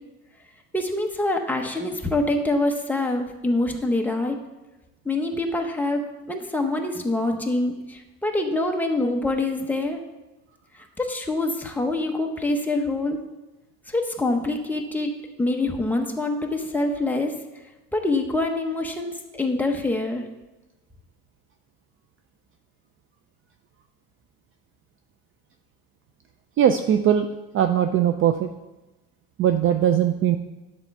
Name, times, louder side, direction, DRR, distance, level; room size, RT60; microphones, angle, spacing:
voice 1, 0.7-4.4 5.0-6.0 6.3-10.0 11.0-13.2 13.9-15.1 15.4-17.3 17.9-20.2, left 2 dB, 5° left, 2 dB, 0.9 m, -25 dB
voice 2, 26.6-27.3 27.5-28.5 29.4-30.4, right 9 dB, 35° right, 7 dB, 0.4 m, -20 dB
10.5 x 4.4 x 7.0 m, 1.0 s
cardioid pair, 150°, 37 cm